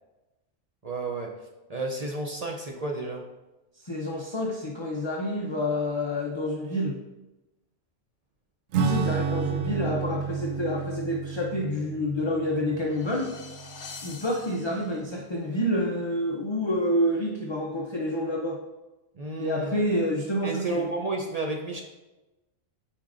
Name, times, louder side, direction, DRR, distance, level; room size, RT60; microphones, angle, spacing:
voice 1, 0.8-1.3 1.7-3.3 19.1-19.8 20.4-21.8, right 2 dB, 40° right, 0 dB, 0.5 m, -31 dB
voice 2, 3.8-7.0 8.8-13.3 14.0-18.6 19.4-20.9, left 1 dB, 35° left, -2 dB, 0.5 m, -28 dB
Acoustic guitar / Strum, 8.7-14.7, right 6 dB, 80° right, 1.0 m, -31 dB
sound 1, 12.4-15.3, left 5 dB, 65° left, 1.0 m, -46 dB
9.5 x 4.5 x 2.5 m, 1.1 s
omnidirectional pair, 1.4 m